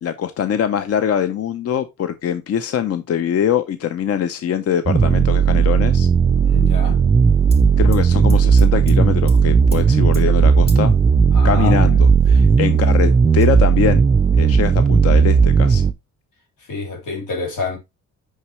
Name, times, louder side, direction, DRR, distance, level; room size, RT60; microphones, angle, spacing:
voice 1, 0.0-6.1 7.8-10.9 11.4-14.0 14.4-15.9, left 9 dB, 50° left, 0.6 m, -22 dB
sound 1, 4.9-15.9, right 6 dB, 20° right, 0.4 m, -15 dB
voice 2, 6.4-7.0 11.3-11.8 16.7-17.8, left 3 dB, 85° left, 2.9 m, -27 dB
sound 2, 7.5-7.6 7.9-9.0 9.3-9.4 9.7-9.8 10.1-10.3 10.7-10.9 11.8-11.9 12.2-12.9 13.3-13.5, left 1 dB, 20° left, 2.1 m, -40 dB
5.8 x 5.8 x 3.2 m
cardioid pair, 90°, 30 cm